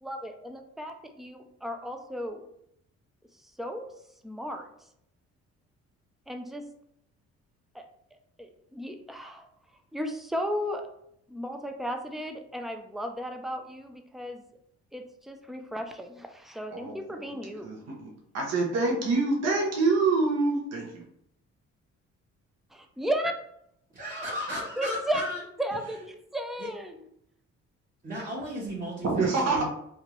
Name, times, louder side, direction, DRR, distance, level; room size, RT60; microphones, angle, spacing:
voice 1, 0.0-2.4 3.4-3.9 4.2-4.7 6.3-6.7 7.7-7.9 8.4-9.5 9.9-10.9 11.3-14.4 14.9-17.7 22.7-23.3 24.8-25.2 25.6-27.0, equal, ahead, 5 dB, 0.4 m, -34 dB
voice 2, 16.7-17.3 17.6-18.1 18.3-21.0 29.0-29.6, right 3 dB, 60° right, -1 dB, 0.9 m, -26 dB
voice 3, 23.9-25.4 26.6-26.7 28.0-29.6, equal, 30° right, -8 dB, 1.2 m, -35 dB
3.5 x 2.4 x 2.9 m, 0.73 s
cardioid pair, 90°, 30 cm